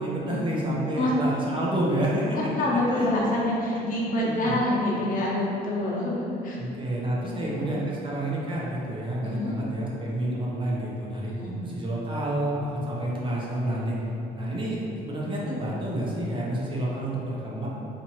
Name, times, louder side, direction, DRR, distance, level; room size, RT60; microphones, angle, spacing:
voice 1, 0.0-2.4 2.9-3.4 3.7-3.9 4.2-4.5 6.6-11.3 11.6-14.0 14.3-17.7, right 1 dB, 30° right, -5 dB, 0.8 m, -29 dB
voice 2, 2.3-6.6 7.2-7.7 9.2-9.5 11.4-11.6, left 1 dB, 55° left, -5 dB, 1.0 m, -27 dB
2.9 x 2.6 x 4.3 m, 2.8 s
cardioid pair, 110°, 17 cm